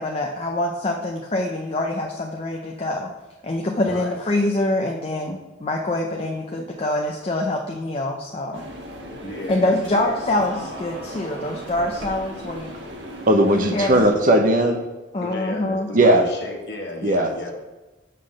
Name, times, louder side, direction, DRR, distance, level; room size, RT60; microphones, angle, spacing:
voice 1, 0.0-3.1 3.4-8.6 9.5-12.7 13.7-14.1 15.1-15.9, left 1 dB, 30° left, 2 dB, 0.5 m, -25 dB
voice 2, 3.8-4.2 9.2-10.1 15.2-17.5, left 1 dB, 60° left, 0 dB, 1.5 m, -34 dB
sound 1, 8.5-14.1, equal, 80° right, 1.4 m, -36 dB
voice 3, 13.3-14.8 15.9-16.2 17.0-17.3, right 1 dB, 45° right, 4 dB, 0.8 m, -17 dB
6.7 x 3.8 x 6.4 m, 1.1 s
head